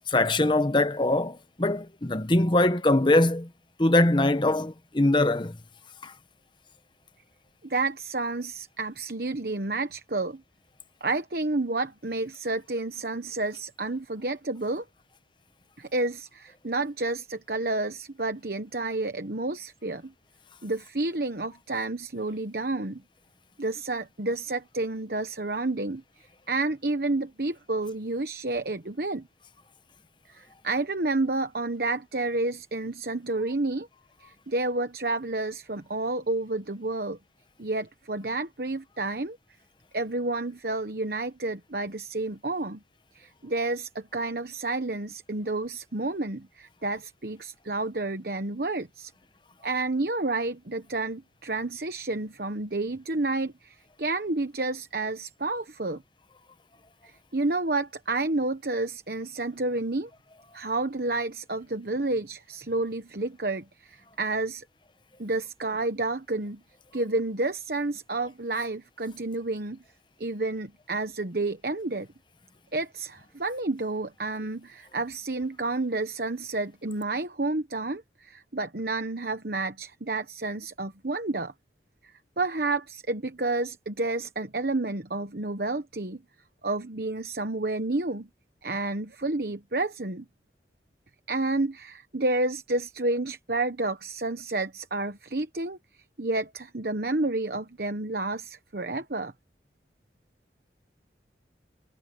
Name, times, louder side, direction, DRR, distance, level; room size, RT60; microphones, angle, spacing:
voice 1, 0.1-3.5 3.8-5.6 6.0-6.1, left 2 dB, 25° left, 1.0 m, -22 dB
voice 2, 7.6-10.4 11.0-14.9 15.8-20.1 20.6-23.0 23.6-26.0 26.5-29.3 30.3-33.9 34.2-37.2 37.6-39.4 39.9-42.8 43.1-49.1 49.6-56.0 57.0-60.1 60.5-64.6 65.2-66.6 66.9-69.8 70.2-72.1 72.7-81.5 82.4-86.2 86.6-88.3 88.6-90.3 91.3-95.8 96.2-99.3, right 2 dB, 55° right, 1.1 m, -30 dB
head